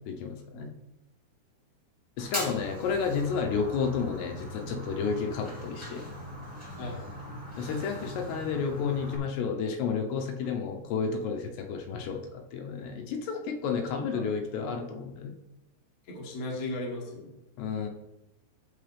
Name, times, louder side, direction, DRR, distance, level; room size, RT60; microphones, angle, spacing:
voice 1, 0.1-0.7 2.2-6.0 7.6-12.2 12.5-15.3 17.6-17.9, left 5 dB, 80° left, 3 dB, 2.9 m, -31 dB
Fire, 2.2-9.2, left 1 dB, 15° right, 0.5 m, -40 dB
voice 2, 6.8-7.3 13.7-14.2 16.1-17.3, left 2 dB, 50° left, -2 dB, 1.0 m, -37 dB
13.5 x 4.7 x 3.4 m, 0.92 s
omnidirectional pair, 5.0 m